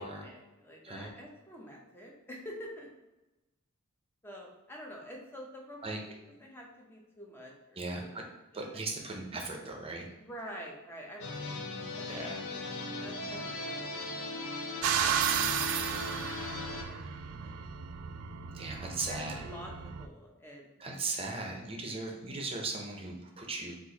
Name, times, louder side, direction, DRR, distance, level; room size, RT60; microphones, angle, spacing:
voice 1, 0.0-2.9 4.2-6.0 6.4-8.3 8.7-9.3 10.2-11.5 12.0-12.2 13.0-14.2 14.8-17.5 18.8-20.8, equal, 10° left, -1 dB, 0.7 m, -48 dB
voice 2, 7.8-8.2 8.5-10.1 12.1-12.4 18.5-19.5 20.8-23.8, right 3 dB, 25° right, 1 dB, 0.6 m, -38 dB
sound 1, 11.2-16.8, left 2 dB, 65° left, 0.6 m, -38 dB
sound 2, 14.8-20.1, right 8 dB, 70° right, 0.3 m, -33 dB
4.4 x 2.5 x 3.9 m, 1.0 s
head